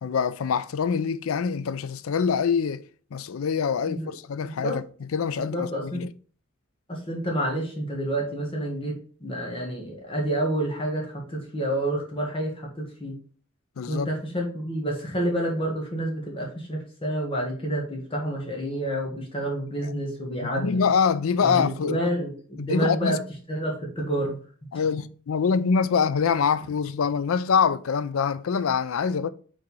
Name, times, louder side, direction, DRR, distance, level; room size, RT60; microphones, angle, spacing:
voice 1, 0.0-2.8 3.1-4.8 5.1-6.1 13.8-14.1 19.8-19.9 20.4-22.0 22.6-23.2 24.7-29.3, left 6 dB, 75° left, 0.4 m, -25 dB
voice 2, 4.4-4.8 5.5-6.1 6.9-13.2 13.9-20.8 21.4-23.2 23.5-24.4, right 1 dB, 25° left, 1.6 m, -29 dB
4.8 x 3.8 x 5.4 m
head